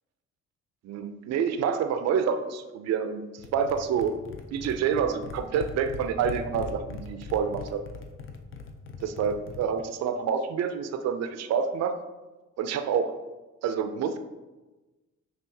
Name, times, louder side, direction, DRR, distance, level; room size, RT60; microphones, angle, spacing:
voice 1, 0.8-3.2 3.5-4.1 4.5-7.8 9.0-11.9 12.6-13.1 13.6-14.2, right 7 dB, 60° right, 8 dB, 0.4 m, -27 dB
sound 1, 3.4-9.8, left 5 dB, 45° left, 0.5 m, -40 dB
5.7 x 2.4 x 2.7 m, 1.1 s
cardioid pair, 90°, 30 cm